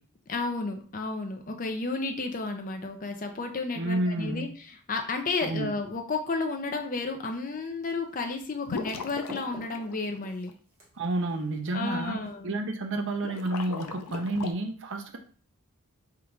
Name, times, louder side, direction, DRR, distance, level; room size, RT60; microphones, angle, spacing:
voice 1, 0.3-10.5 11.7-12.6, left 3 dB, 35° left, 5 dB, 0.6 m, -32 dB
voice 2, 3.8-4.5 5.4-5.7 11.0-15.2, right 2 dB, 55° right, 4 dB, 0.6 m, -30 dB
sound 1, 7.3-12.4, right 1 dB, 30° right, 1.3 m, -51 dB
sound 2, 8.7-10.5 13.1-14.5, left 5 dB, 90° left, 0.5 m, -38 dB
3.6 x 2.5 x 4.4 m, 0.43 s
head